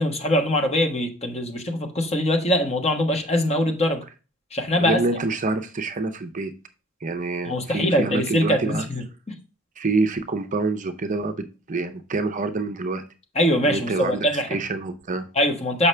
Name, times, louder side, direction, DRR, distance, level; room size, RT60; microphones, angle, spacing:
voice 1, 0.0-4.0 4.5-5.0 7.5-9.0 13.3-14.5 15.3-15.9, left 1 dB, 30° left, 3 dB, 1.3 m, -22 dB
voice 2, 4.8-6.5 7.0-8.9 9.8-13.0 13.6-15.3, right 3 dB, 35° right, 8 dB, 0.6 m, -26 dB
6.9 x 5.7 x 3.3 m, 0.33 s
head